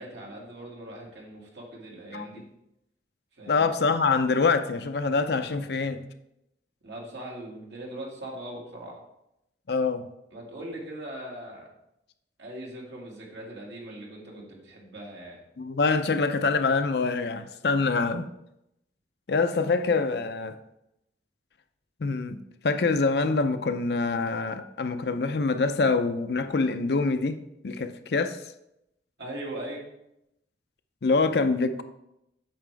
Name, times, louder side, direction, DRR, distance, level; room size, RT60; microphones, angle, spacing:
voice 1, 0.0-2.4 3.4-3.7 6.8-9.0 10.3-11.7 12.4-15.4 29.2-29.8, right 1 dB, 80° right, 2.2 m, -40 dB
voice 2, 2.1-2.5 3.5-6.0 9.7-10.0 15.6-18.3 19.3-20.6 22.0-22.4 22.6-27.4 27.6-28.4 31.0-31.8, left 4 dB, 65° left, 0.5 m, -25 dB
8.5 x 6.1 x 3.4 m
head